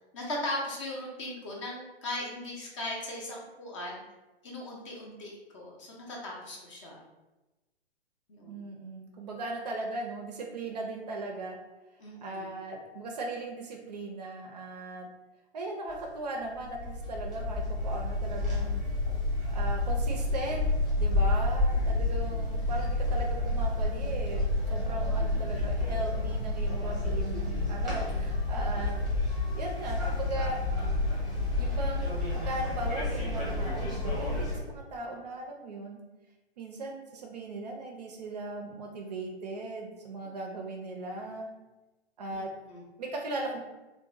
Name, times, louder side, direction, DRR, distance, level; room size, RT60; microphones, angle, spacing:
voice 1, 0.1-4.0 4.4-7.0 8.3-8.6 12.0-12.5 21.7-22.0 42.3-42.8, left 1 dB, 30° left, -2 dB, 0.5 m, -38 dB
voice 2, 8.5-11.6 12.2-15.1 15.5-18.8 19.5-20.7 21.0-28.9 29.5-30.6 31.6-32.2 32.4-36.0 36.6-41.5 42.2-42.5 43.0-43.6, right 2 dB, 40° right, 1 dB, 0.4 m, -38 dB
sound 1, 15.9-16.0 16.6-34.6, left 2 dB, ahead, 0.8 m, -29 dB
2.8 x 2.1 x 2.4 m, 1.1 s
figure-of-eight pair, 120°, 32 cm